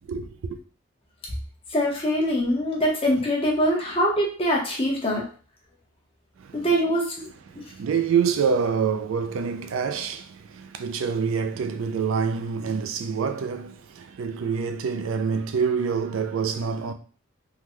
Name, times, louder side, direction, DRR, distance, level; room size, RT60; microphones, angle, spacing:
voice 1, 0.1-0.6 6.4-6.7 7.5-16.9, right 6 dB, 75° right, 0.4 m, -26 dB
voice 2, 1.7-5.2 6.5-7.3, equal, 25° left, 0.8 m, -23 dB
3.6 x 2.2 x 3.0 m
head